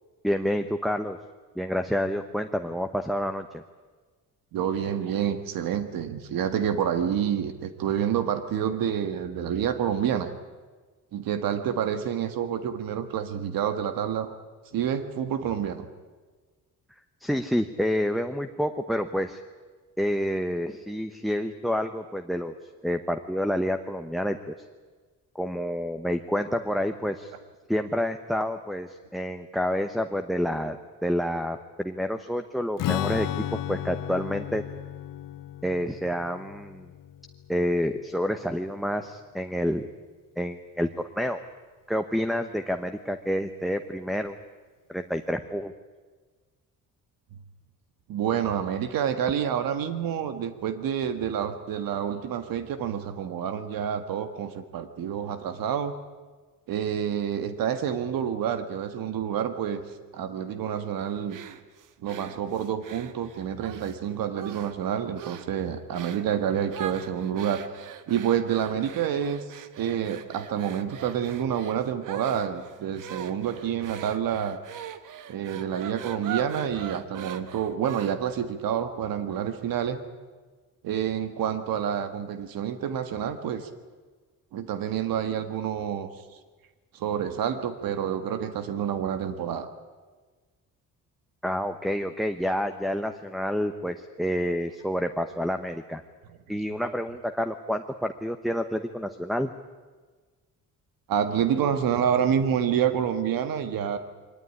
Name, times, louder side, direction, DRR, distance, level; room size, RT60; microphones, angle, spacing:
voice 1, 0.2-1.2 1.6-3.6 17.2-19.4 20.0-22.5 22.8-24.5 25.3-27.3 27.7-34.6 35.6-36.9 37.5-39.9 40.4-40.9 41.2-41.4 41.9-44.4 44.9-45.7 91.4-96.0 96.5-99.5, equal, ahead, 9 dB, 0.8 m, -28 dB
voice 2, 4.5-10.3 11.1-14.3 14.7-15.9 48.1-55.9 56.7-59.8 60.1-61.4 62.0-67.6 68.1-74.6 75.3-80.0 80.8-83.7 84.5-86.1 86.9-89.7 101.1-104.0, right 9 dB, 80° right, 9 dB, 1.7 m, -28 dB
Strum, 32.8-38.4, left 12 dB, 70° left, 0.8 m, -34 dB
sound 1, 61.3-64.0 64.4-64.8 65.2-65.5 65.9-66.3 66.7-78.4, right 9 dB, 65° right, 1.3 m, -41 dB
23.0 x 19.0 x 10.0 m, 1.4 s
cardioid pair, 150°, 34 cm